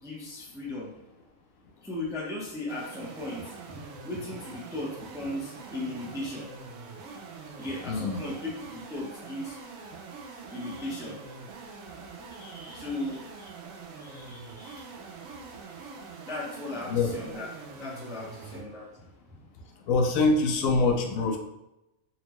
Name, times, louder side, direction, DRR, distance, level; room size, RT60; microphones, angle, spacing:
voice 1, 0.0-0.9 1.8-6.5 7.6-9.6 10.5-11.2 12.3-13.5 14.0-14.8 16.3-17.5 17.8-19.0, left 2 dB, 5° right, -5 dB, 0.3 m, -37 dB
sound 1, 2.7-18.7, right 4 dB, 80° right, 1.0 m, -44 dB
voice 2, 7.9-8.2 16.9-17.1 19.9-21.4, left 3 dB, 80° left, 4 dB, 1.0 m, -24 dB
4.1 x 2.1 x 2.9 m, 0.90 s
omnidirectional pair, 1.4 m